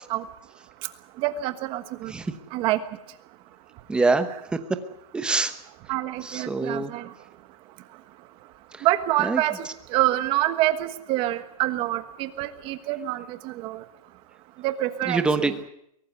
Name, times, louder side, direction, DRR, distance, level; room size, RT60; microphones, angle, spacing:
voice 1, 1.2-2.1 2.5-2.8 5.9-7.0 8.8-9.5 9.9-13.8 14.6-15.5, right 15 dB, 25° right, 11 dB, 1.3 m, -26 dB
voice 2, 3.9-4.8 5.1-5.5 6.2-6.9 8.7-8.9 9.2-9.7 15.0-15.5, right 3 dB, 5° right, 9 dB, 1.0 m, -25 dB
23.0 x 17.5 x 8.1 m, 0.73 s
supercardioid pair, 165°, 19 cm